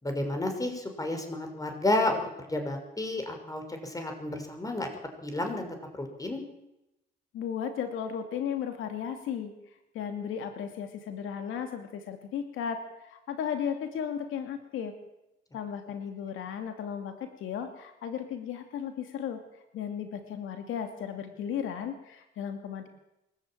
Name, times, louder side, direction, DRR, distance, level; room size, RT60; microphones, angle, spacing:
voice 1, 0.0-4.9 5.2-6.4, left 2 dB, 15° left, 5 dB, 5.9 m, -31 dB
voice 2, 7.3-9.5 9.9-14.9 15.5-19.4 19.7-22.9, left 8 dB, 85° left, 6 dB, 2.6 m, -35 dB
23.5 x 14.0 x 9.1 m, 0.90 s
cardioid pair, 90°, 20 cm